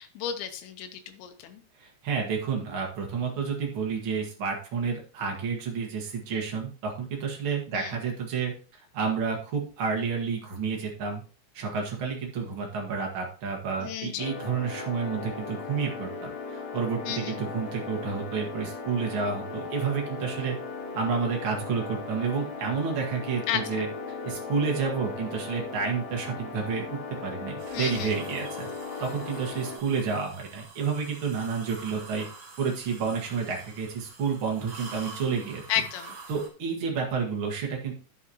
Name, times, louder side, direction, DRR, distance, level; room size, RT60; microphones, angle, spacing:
voice 1, 0.0-1.6 7.7-8.0 13.8-14.4 17.0-17.4 23.5-23.9 27.7-28.2 35.7-36.2, left 10 dB, 90° left, 7 dB, 3.1 m, -33 dB
voice 2, 1.8-8.5 8.9-11.2 11.5-20.6 20.9-23.9 24.2-28.7 29.0-32.3 32.6-35.6 36.3-37.9, right 5 dB, 85° right, 0 dB, 1.1 m, -30 dB
sound 1, 14.2-29.8, left 4 dB, 70° left, 1.6 m, -37 dB
sound 2, 27.6-36.5, right 3 dB, 55° right, 3.6 m, -46 dB
11.0 x 7.1 x 2.9 m, 0.37 s
omnidirectional pair, 5.0 m